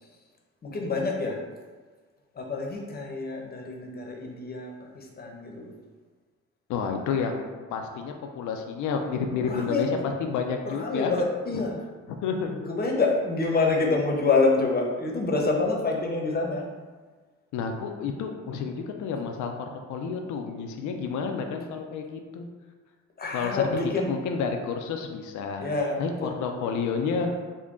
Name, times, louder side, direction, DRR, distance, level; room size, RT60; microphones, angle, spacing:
voice 1, 0.6-1.4 2.3-5.7 9.4-9.9 10.6-11.8 12.6-16.7 23.2-24.1 25.6-26.3 26.6-26.8, left 3 dB, 30° left, 0 dB, 0.7 m, -27 dB
voice 2, 6.7-7.4 7.7-11.1 11.5-11.6 12.2-12.6 17.5-22.5 23.3-23.6 24.1-25.7 26.0-27.3, left 5 dB, 75° left, 4 dB, 0.5 m, -30 dB
3.7 x 2.2 x 3.6 m, 1.4 s
cardioid pair, 90°, 30 cm